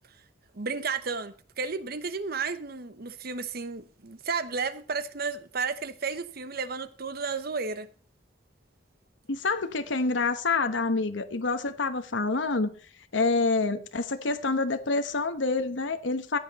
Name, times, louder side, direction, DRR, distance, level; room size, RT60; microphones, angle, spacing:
voice 1, 0.5-7.9, right 4 dB, 50° right, 0.9 m, -33 dB
voice 2, 9.3-12.8 13.1-16.4, left 3 dB, 70° left, 1.0 m, -27 dB
15.0 x 8.7 x 4.1 m
head